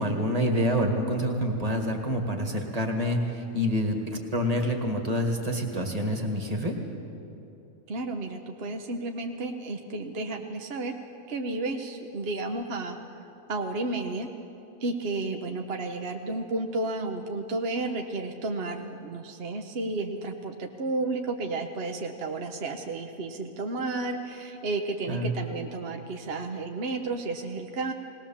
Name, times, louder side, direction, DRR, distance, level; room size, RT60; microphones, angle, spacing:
voice 1, 0.0-4.0 4.3-6.7 25.1-25.3, equal, 25° right, 3 dB, 2.0 m, -27 dB
voice 2, 7.9-10.9 11.3-14.3 14.8-27.9, right 2 dB, 45° right, 3 dB, 1.1 m, -32 dB
20.0 x 19.0 x 7.3 m, 2.9 s
omnidirectional pair, 1.5 m